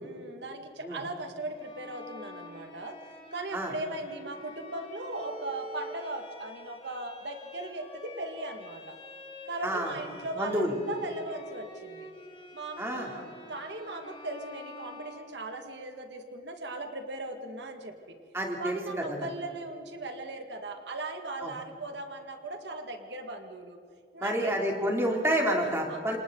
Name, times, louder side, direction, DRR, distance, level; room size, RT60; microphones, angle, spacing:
voice 1, 0.0-3.0 3.3-9.0 9.5-12.1 12.5-18.2 18.6-23.8 24.1-24.6 25.9-26.2, right 2 dB, 85° right, 5 dB, 2.0 m, -38 dB
Bowed string instrument, 1.5-15.8, left 2 dB, 30° left, 7.2 m, -47 dB
voice 2, 10.4-10.7 12.8-13.1 18.3-19.2 21.4-21.5 24.2-26.2, equal, 15° right, 0 dB, 3.1 m, -29 dB
28.5 x 27.5 x 4.0 m, 2.4 s
head